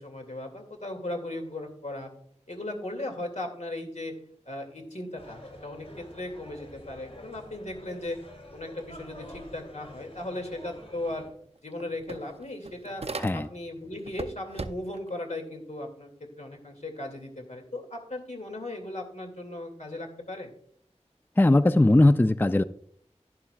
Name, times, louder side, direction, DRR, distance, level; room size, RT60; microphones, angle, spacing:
voice 1, 0.0-2.1 2.5-4.1 4.5-8.2 8.5-11.2 11.6-13.0 13.3-16.1 16.4-20.5, left 1 dB, 80° left, 2 dB, 2.3 m, -37 dB
sound 1, 5.2-11.3, left 1 dB, 60° left, 3.7 m, -47 dB
sound 2, 11.1-11.2 11.5-13.7 14.0-15.1, right 3 dB, 60° right, 0.5 m, -39 dB
voice 2, 13.2-13.5 21.4-22.6, left 2 dB, 15° left, 12 dB, 0.4 m, -19 dB
11.5 x 10.5 x 2.3 m, 0.65 s
wide cardioid pair, 40°, 12 cm